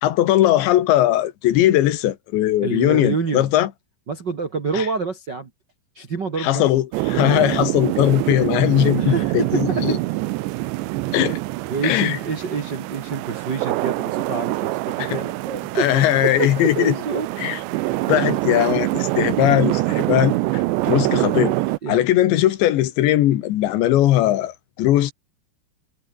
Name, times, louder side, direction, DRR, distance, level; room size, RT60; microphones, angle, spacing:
voice 1, 0.0-3.7 4.7-4.9 6.4-10.0 11.1-11.4 11.8-12.2 15.0-15.2 15.8-16.9 17.4-17.6 18.1-21.6 21.9-25.1, left 13 dB, 85° left, 3.8 m, -19 dB
voice 2, 2.6-3.5 4.1-5.5 5.9-6.6 9.0-10.0 11.7-17.3 18.5-18.6 21.8-22.1, right 5 dB, 55° right, 1.2 m, -27 dB
sound 1, 6.9-21.8, right 19 dB, 90° right, 3.0 m, -25 dB
omnidirectional pair, 5.0 m